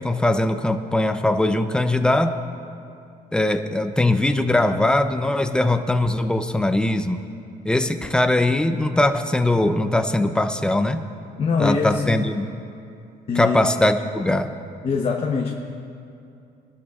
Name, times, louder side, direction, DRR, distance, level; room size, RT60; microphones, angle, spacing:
voice 1, 0.0-2.4 3.3-7.2 7.6-11.1 11.6-12.5 13.3-14.5, left 1 dB, 5° left, 8 dB, 0.6 m, -21 dB
voice 2, 11.4-12.2 13.3-13.6 14.8-15.6, left 5 dB, 35° left, 1 dB, 1.0 m, -23 dB
22.0 x 13.5 x 2.5 m, 2.6 s
cardioid pair, 110°, 17 cm